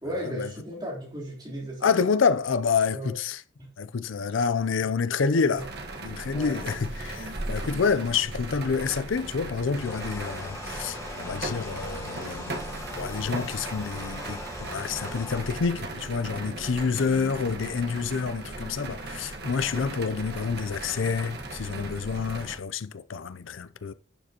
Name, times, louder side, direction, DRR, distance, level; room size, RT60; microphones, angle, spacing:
voice 1, 0.0-2.0 2.9-3.1 3.6-3.7 4.2-4.3 4.9-5.6 6.3-6.6 7.1-7.8, right 1 dB, 20° right, 3.4 m, -37 dB
voice 2, 1.8-3.4 3.8-5.6 6.0-12.6 13.0-23.9, left 5 dB, 80° left, 0.5 m, -28 dB
sound 1, 5.6-22.6, right 2 dB, 55° right, 1.1 m, -37 dB
sound 2, 6.5-14.6, right 1 dB, 70° right, 1.9 m, -49 dB
sound 3, 9.7-15.6, left 2 dB, 15° left, 1.2 m, -40 dB
11.0 x 7.5 x 2.9 m
head